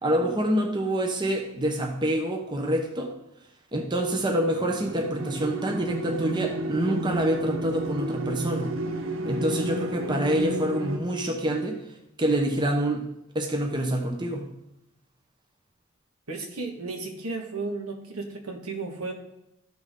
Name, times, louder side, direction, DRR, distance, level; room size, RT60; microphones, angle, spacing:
voice 1, 0.0-3.1 3.7-8.7 9.3-11.8 12.2-13.0 13.3-14.4, right 1 dB, 20° right, 2 dB, 0.8 m, -26 dB
sound 1, 4.1-11.0, right 1 dB, 60° right, 0.8 m, -31 dB
voice 2, 16.3-19.1, right 3 dB, 75° right, 3 dB, 1.6 m, -34 dB
13.0 x 6.1 x 3.7 m, 0.85 s
head